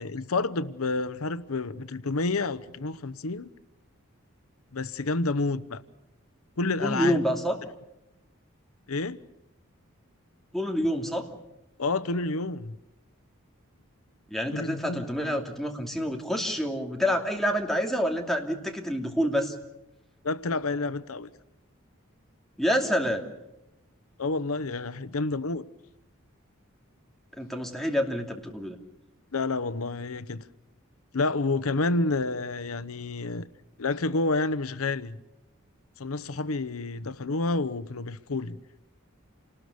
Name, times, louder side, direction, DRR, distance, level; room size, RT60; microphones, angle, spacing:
voice 1, 0.0-3.5 4.7-5.8 6.6-7.2 8.9-9.2 11.8-12.8 14.5-15.0 20.2-21.3 24.2-25.6 29.3-30.4 31.1-33.4 33.8-35.2 36.0-38.6, left 3 dB, 85° left, 0.9 m, -29 dB
voice 2, 6.8-7.6 10.5-11.3 14.3-19.5 22.6-23.3 27.3-28.8, equal, ahead, 2.7 m, -27 dB
28.5 x 19.5 x 7.0 m
head